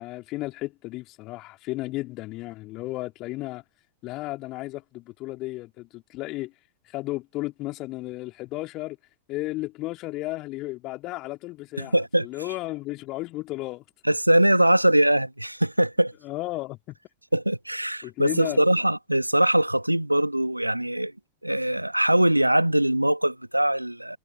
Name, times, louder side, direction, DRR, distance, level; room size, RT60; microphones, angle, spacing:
voice 1, 0.0-3.6 4.0-6.5 6.9-9.0 9.3-13.8 16.2-17.0 18.0-18.6, left 19 dB, 40° left, 2.8 m, -34 dB
voice 2, 11.8-12.3 14.0-16.1 17.3-21.1 21.4-24.2, right 1 dB, 85° right, 1.4 m, -22 dB
figure-of-eight pair, 90°, 0 cm